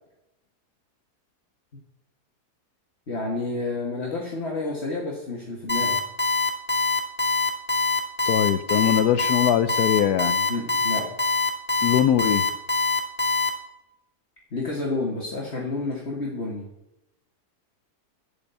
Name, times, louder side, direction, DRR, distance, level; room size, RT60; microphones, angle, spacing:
voice 1, 3.1-6.0 10.5-11.1 14.5-16.7, left 2 dB, 40° left, -2 dB, 2.0 m, -30 dB
Alarm, 5.7-13.5, left 4 dB, 5° left, 1.5 m, -23 dB
voice 2, 8.3-10.5 11.8-12.5, left 10 dB, 80° left, 15 dB, 1.1 m, -22 dB
11.5 x 5.3 x 8.2 m, 0.89 s
omnidirectional pair, 1.7 m